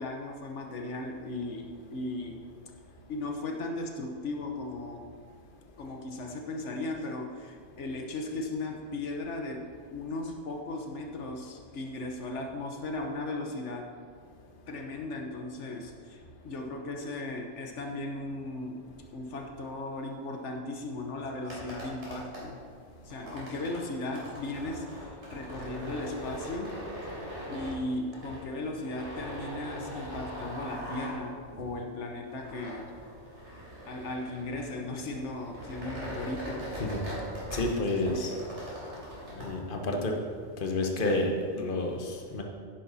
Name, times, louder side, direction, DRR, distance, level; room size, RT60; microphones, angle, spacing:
voice 1, 0.0-2.4 3.1-5.1 5.8-13.9 14.7-18.9 19.1-22.6 23.0-26.8 27.5-32.9 33.9-36.8 38.0-38.3, left 2 dB, 80° left, 2 dB, 1.3 m, -37 dB
sound 1, 21.4-39.5, equal, 75° right, 3.8 m, -41 dB
voice 2, 37.5-38.3 39.3-40.2 40.6-42.4, left 2 dB, 50° left, 2 dB, 1.3 m, -30 dB
10.5 x 10.0 x 4.1 m, 2.1 s
omnidirectional pair, 1.2 m